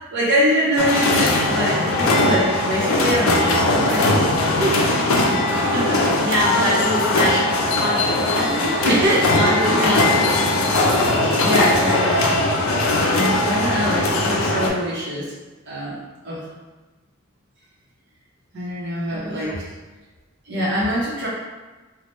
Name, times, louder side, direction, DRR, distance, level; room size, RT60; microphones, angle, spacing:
voice 1, 0.0-4.2 4.4-4.8 5.7-6.6 8.8-10.0 10.7-11.0 11.4-12.2 13.1-15.3 15.7-16.5 18.5-19.7 20.5-21.3, equal, 55° right, -6 dB, 0.7 m, -24 dB
sound 1, 0.8-14.7, left 2 dB, 85° left, 0.4 m, -19 dB
voice 2, 6.2-7.5 7.8-10.1 10.4-10.8 19.1-19.6, equal, 90° right, -5 dB, 0.8 m, -25 dB
2.9 x 2.1 x 3.1 m, 1.2 s
head